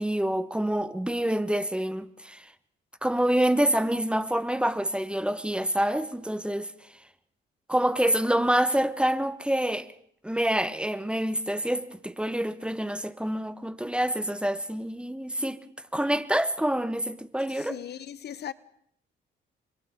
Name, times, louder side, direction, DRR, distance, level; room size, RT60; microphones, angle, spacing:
voice 1, 0.0-2.5 3.0-6.7 7.7-9.9 10.2-15.6 15.9-17.7, right 1 dB, 5° right, 1.1 m, -27 dB
voice 2, 17.5-18.5, left 10 dB, 55° left, 0.8 m, -38 dB
30.0 x 24.5 x 3.6 m
cardioid pair, 90°, 20 cm